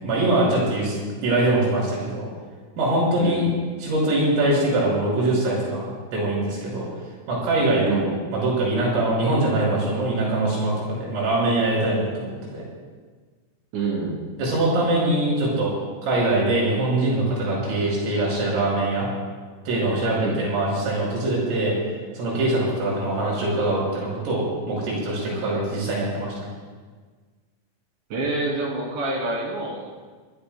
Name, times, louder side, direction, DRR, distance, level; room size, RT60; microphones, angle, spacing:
voice 1, 0.0-2.3 2.8-3.5 3.8-6.9 7.3-8.1 8.3-12.6 14.4-15.7 16.0-19.1 19.7-21.7 22.2-26.3, right 2 dB, 80° right, -4 dB, 8.2 m, -23 dB
voice 2, 3.2-3.5 7.8-8.1 13.7-14.2 20.1-20.4 28.1-29.9, right 3 dB, 60° right, -2 dB, 4.9 m, -27 dB
24.0 x 19.5 x 2.2 m, 1.5 s
omnidirectional pair, 5.9 m